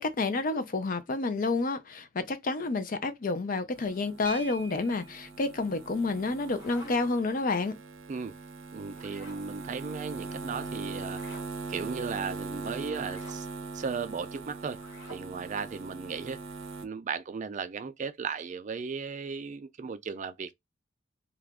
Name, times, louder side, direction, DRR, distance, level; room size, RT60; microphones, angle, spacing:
voice 1, 0.0-7.7, left 3 dB, 45° left, 0.5 m, -29 dB
Basement Mains, 3.7-16.9, right 4 dB, 80° right, 0.6 m, -41 dB
sound 1, 4.2-5.3 6.8-6.9 7.2-7.4 7.8-8.1, right 3 dB, 10° left, 0.9 m, -45 dB
sound 2, 6.2-7.2 8.9-9.5 11.0-11.5 13.0-13.4 14.7-15.3, equal, 60° left, 1.3 m, -50 dB
voice 2, 8.7-11.2 11.7-13.5 13.7-14.8 15.1-16.4 16.8-20.5, right 5 dB, 40° right, 0.3 m, -36 dB
2.9 x 2.4 x 3.5 m
head